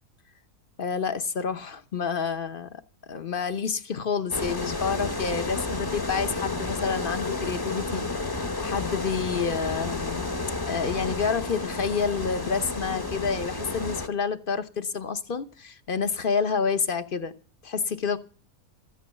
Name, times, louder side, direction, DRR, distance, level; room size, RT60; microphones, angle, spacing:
voice 1, 0.8-2.8 3.1-10.4 10.7-17.3 17.6-18.2, left 6 dB, 45° left, 0.9 m, -29 dB
sound 1, 4.3-14.1, left 2 dB, 20° left, 0.9 m, -31 dB
14.5 x 8.6 x 8.2 m
omnidirectional pair, 1.5 m